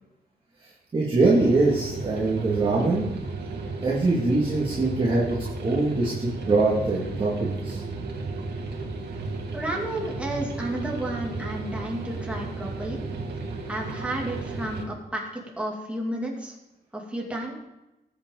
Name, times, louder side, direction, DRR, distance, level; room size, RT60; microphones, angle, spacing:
voice 1, 0.9-3.1 3.8-5.4 5.6-7.8, right 3 dB, 30° right, -6 dB, 2.3 m, -23 dB
sound 1, 1.2-14.8, right 3 dB, 85° right, 2.0 m, -34 dB
voice 2, 9.5-13.0 13.7-16.5 16.9-17.5, right 1 dB, 5° right, -2 dB, 2.6 m, -32 dB
19.5 x 8.2 x 3.9 m, 0.95 s
wide cardioid pair, 170°, 17 cm